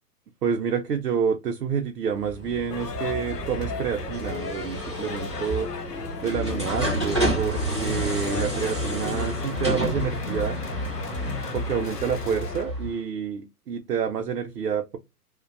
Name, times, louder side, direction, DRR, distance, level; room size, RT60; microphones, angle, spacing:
voice 1, 0.4-5.7 6.2-10.6 11.5-15.0, right 7 dB, 80° right, 0.6 m, -28 dB
sound 1, 2.2-12.9, right 1 dB, 20° right, 0.3 m, -31 dB
sound 2, 2.7-12.6, left 5 dB, 90° left, 0.6 m, -36 dB
sound 3, 6.2-12.9, left 1 dB, 35° left, 0.5 m, -33 dB
2.5 x 2.2 x 2.3 m
figure-of-eight pair, 115°, 47 cm